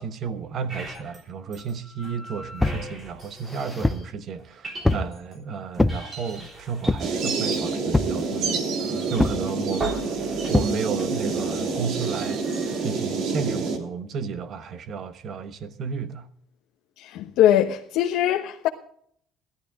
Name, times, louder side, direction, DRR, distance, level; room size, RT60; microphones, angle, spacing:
voice 1, 0.0-8.6 9.1-9.9 10.4-12.4 12.8-16.3, right 6 dB, 40° right, 1.1 m, -32 dB
sound 1, 0.7-1.2 1.5-4.1 4.4-5.4 5.7-12.9, right 2 dB, 25° right, 3.3 m, -40 dB
sound 2, 2.6-2.9 3.4-4.1 4.8-5.1 5.8-6.0 6.9-7.2 7.9-8.2 9.2-9.5 10.5-10.8, left 2 dB, 5° left, 0.5 m, -23 dB
sound 3, 7.0-13.8, right 4 dB, 55° right, 2.7 m, -27 dB
voice 2, 17.0-18.7, left 11 dB, 70° left, 1.0 m, -21 dB
17.0 x 12.5 x 3.6 m
cardioid pair, 170°, 0 cm